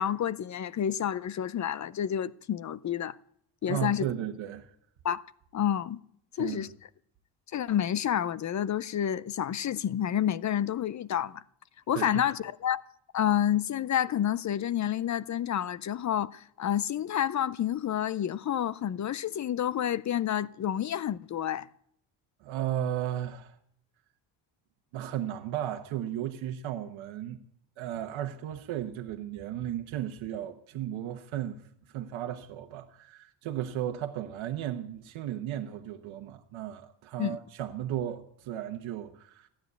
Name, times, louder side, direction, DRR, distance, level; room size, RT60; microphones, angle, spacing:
voice 1, 0.0-3.2 3.6-4.1 5.0-5.2 5.5-6.0 6.4-6.7 7.5-11.4 11.9-12.8 13.1-21.7 37.2-37.4, left 10 dB, 40° left, 0.5 m, -29 dB
voice 2, 3.7-4.7 6.4-6.7 11.9-12.2 22.4-23.5 24.9-27.4 27.8-31.6 31.9-39.5, right 11 dB, 85° right, 1.2 m, -35 dB
15.5 x 10.5 x 8.0 m
cardioid pair, 125°, 46 cm